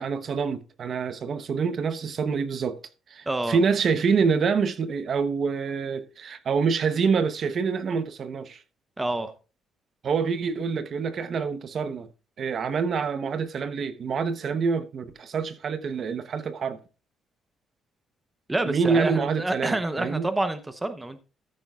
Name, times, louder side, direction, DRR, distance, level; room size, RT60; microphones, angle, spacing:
voice 1, 0.0-2.8 3.1-8.6 10.0-12.1 12.4-16.8 18.6-20.3, right 5 dB, 40° right, 0.8 m, -26 dB
voice 2, 3.3-3.6 9.0-9.3 18.5-21.2, right 2 dB, 10° right, 0.8 m, -28 dB
13.5 x 9.7 x 2.4 m
cardioid pair, 175°, 0 cm